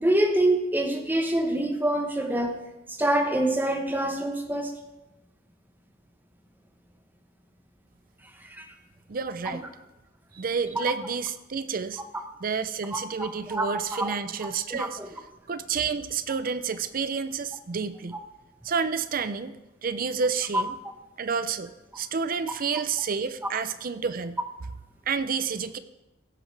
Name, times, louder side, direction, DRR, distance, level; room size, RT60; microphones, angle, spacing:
voice 1, 0.0-2.5 2.9-4.8 8.5-8.7 12.9-14.1 14.7-15.1 20.5-20.6, right 1 dB, 10° right, 4 dB, 1.0 m, -26 dB
voice 2, 9.1-9.7 10.3-12.0 12.4-15.1 15.5-18.2 18.6-19.6 19.8-20.7 21.2-21.7 22.0-24.4 25.1-25.8, right 5 dB, 50° right, 13 dB, 0.5 m, -29 dB
16.5 x 7.9 x 3.3 m, 0.98 s
head